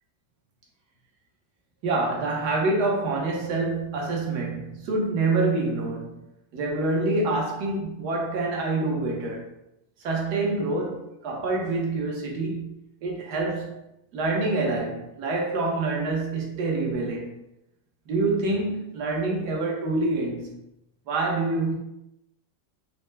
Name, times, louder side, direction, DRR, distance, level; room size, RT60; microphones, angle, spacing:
voice 1, 1.8-9.5 10.0-13.8 14.1-17.4 18.1-20.6 21.1-21.7, right 2 dB, 65° right, 1.3 m, -26 dB
4.3 x 2.0 x 3.2 m
omnidirectional pair, 2.0 m